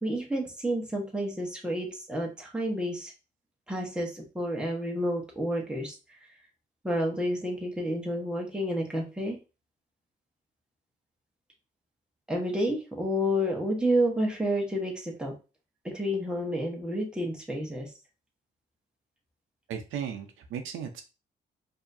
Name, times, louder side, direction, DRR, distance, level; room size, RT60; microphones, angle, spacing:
voice 1, 0.0-3.1 3.7-5.9 6.8-9.4 12.3-15.3 15.8-17.9, equal, 5° right, -1 dB, 1.3 m, -30 dB
voice 2, 19.7-21.0, right 8 dB, 85° right, 6 dB, 0.7 m, -36 dB
4.6 x 2.8 x 2.7 m, 0.31 s
cardioid pair, 90°, 20 cm